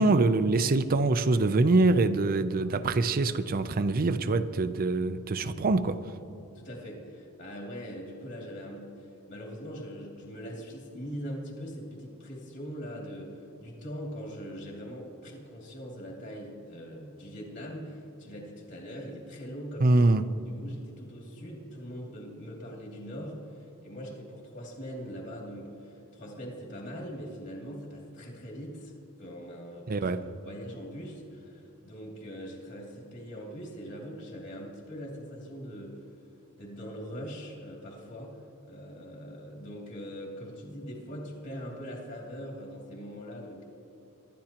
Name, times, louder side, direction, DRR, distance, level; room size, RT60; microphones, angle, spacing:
voice 1, 0.0-6.0 19.8-20.2 29.9-30.2, right 2 dB, 40° right, 0.5 m, -24 dB
voice 2, 6.5-20.0 20.4-30.1 30.4-36.0 36.6-43.6, equal, 55° left, 2.5 m, -42 dB
24.5 x 11.5 x 2.9 m
head